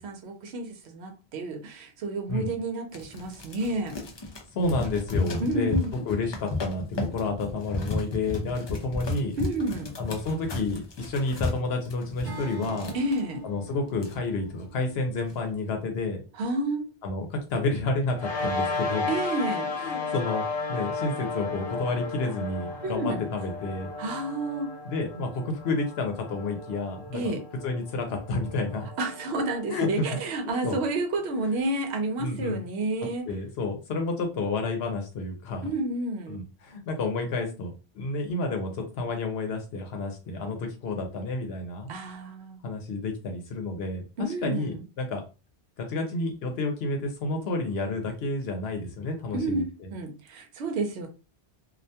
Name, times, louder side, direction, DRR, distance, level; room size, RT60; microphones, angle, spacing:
voice 1, 0.0-4.0 5.4-5.9 9.4-9.9 12.9-13.4 16.4-16.9 19.1-19.7 22.8-23.2 24.0-24.7 27.1-27.4 29.0-33.3 35.6-36.4 41.9-42.6 44.2-44.8 49.3-49.6 49.9-51.1, right 2 dB, 80° right, 0.9 m, -30 dB
sound 1, 2.9-13.2 13.7-13.8 13.9-14.6 15.0-15.4, left 3 dB, 45° left, 0.3 m, -34 dB
voice 2, 4.5-5.7 6.1-9.3 10.0-12.9 13.4-16.2 17.0-19.1 19.7-23.9 24.8-27.2 27.6-28.9 29.7-30.0 30.6-30.8 32.2-32.6 33.3-35.7 36.3-41.9 42.6-45.2 45.8-49.9, left 3 dB, 75° left, 0.8 m, -30 dB
Acoustic guitar / Strum, 12.2-16.4, right 3 dB, 50° right, 0.7 m, -43 dB
sound 2, 18.2-30.9, left 3 dB, 30° left, 0.7 m, -34 dB
2.4 x 2.2 x 2.7 m
omnidirectional pair, 1.1 m